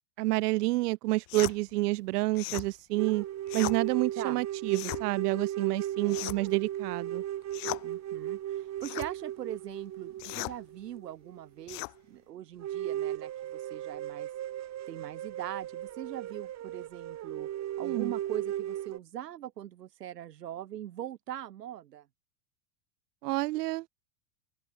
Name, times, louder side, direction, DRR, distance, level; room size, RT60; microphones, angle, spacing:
voice 1, 0.2-3.2 3.5-7.2 17.8-18.1 23.2-23.9, right 20 dB, 75° right, 0.9 m, -29 dB
sound 1, 1.3-1.6 2.3-2.7 3.5-3.8 4.7-5.0 6.1-6.5 7.5-7.8 8.8-9.1 10.2-10.6 11.7-11.9, left 27 dB, 45° left, 1.1 m, -37 dB
sound 2, 3.0-11.6 12.0-12.1 12.6-19.0, right 12 dB, 35° right, 3.7 m, -36 dB
voice 2, 7.8-14.3 14.9-17.5 17.8-22.1, right 11 dB, 90° right, 5.4 m, -41 dB
open air
supercardioid pair, 120°, 47 cm